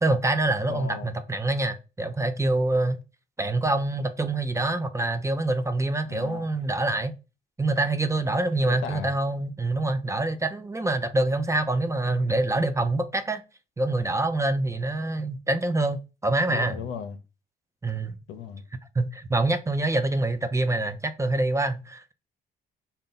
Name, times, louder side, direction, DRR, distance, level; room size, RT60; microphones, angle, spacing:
voice 1, 0.0-3.0 3.4-7.1 7.6-13.4 13.8-16.8 17.8-18.1 18.9-22.1, right 2 dB, 15° right, 0.5 m, -25 dB
voice 2, 0.7-1.1 6.0-6.5 8.6-9.1 16.5-17.2 18.3-18.6, left 6 dB, 85° left, 0.6 m, -36 dB
3.9 x 2.2 x 3.8 m
cardioid pair, 90°, 20 cm